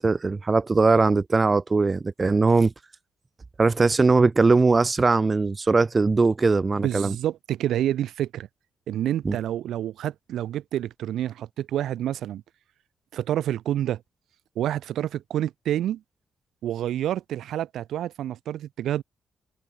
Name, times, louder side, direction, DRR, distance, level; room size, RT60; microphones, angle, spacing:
voice 1, 0.0-2.7 3.6-7.2 9.2-9.4, right 3 dB, 20° right, 0.7 m, -20 dB
voice 2, 6.8-8.5 8.9-12.4 13.1-14.0 14.5-16.0 16.6-19.0, right 11 dB, 70° right, 1.3 m, -28 dB
cardioid pair, 180°, 0 cm